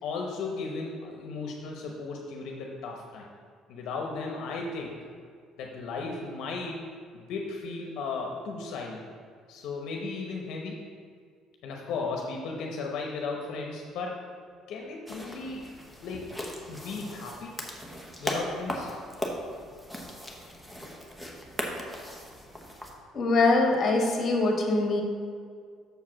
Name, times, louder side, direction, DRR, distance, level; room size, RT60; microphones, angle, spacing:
voice 1, 0.0-3.3 3.7-5.0 5.6-6.8 7.1-9.0 9.5-10.8 11.6-14.2 14.7-15.7 16.0-16.3 16.7-17.5 18.2-18.9, left 4 dB, 65° left, 1 dB, 0.9 m, -35 dB
sound 1, 15.1-22.9, equal, 5° right, 0.9 m, -38 dB
voice 2, 23.1-25.0, left 2 dB, 35° left, 1 dB, 1.5 m, -23 dB
6.7 x 4.8 x 6.1 m, 2.1 s
cardioid pair, 145°, 0 cm